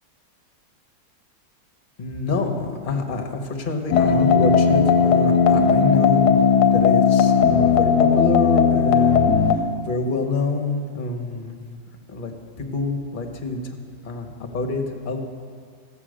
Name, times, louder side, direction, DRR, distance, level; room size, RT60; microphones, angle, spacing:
voice 1, 2.0-6.3 6.7-11.6 12.1-12.3 12.6-13.8 14.0-15.2, left 3 dB, 35° left, 3 dB, 1.0 m, -27 dB
sound 1, 3.9-9.6, left 6 dB, 70° left, 1.2 m, -17 dB
13.5 x 7.9 x 6.3 m, 2.1 s
omnidirectional pair, 2.0 m